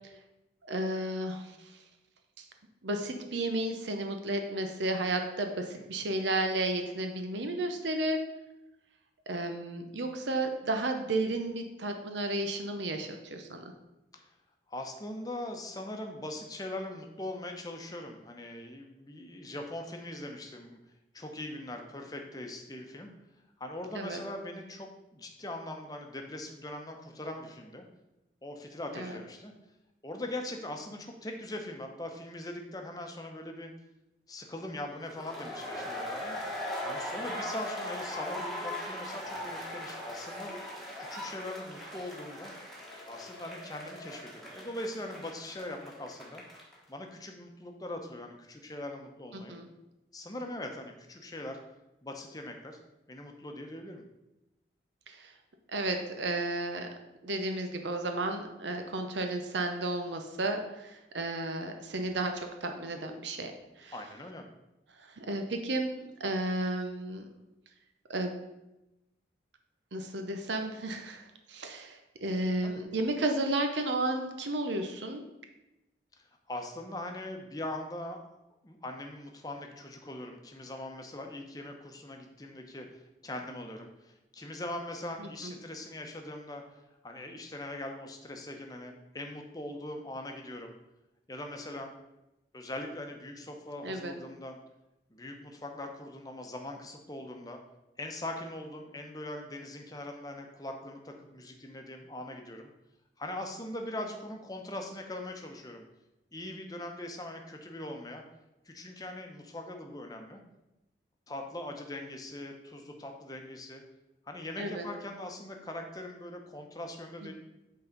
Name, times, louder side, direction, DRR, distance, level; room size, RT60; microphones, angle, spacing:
voice 1, 0.6-1.8 2.4-2.5 2.8-8.2 9.3-13.7 23.9-24.2 28.9-29.1 49.3-49.7 55.1-55.3 55.7-56.9 57.2-63.5 63.8-63.9 65.0-67.3 68.1-68.4 69.9-75.2 85.2-85.5 93.8-94.1 114.6-114.9, right 2 dB, 80° right, 5 dB, 0.8 m, -33 dB
voice 2, 14.7-20.8 21.1-23.1 23.6-27.8 28.4-29.5 30.0-33.7 34.3-36.4 36.8-40.5 41.0-42.5 43.1-46.4 46.9-49.6 50.1-51.6 52.0-52.8 53.1-54.0 63.9-64.4 72.6-72.8 76.2-78.2 78.6-90.7 91.3-91.9 92.5-94.6 95.1-97.6 98.0-102.7 103.2-105.8 106.3-108.2 108.6-110.4 111.3-113.8 114.3-117.3, left 1 dB, 20° left, 3 dB, 0.9 m, -41 dB
sound 1, 35.1-46.8, left 1 dB, ahead, 1.2 m, -40 dB
8.4 x 3.9 x 5.3 m, 0.94 s
head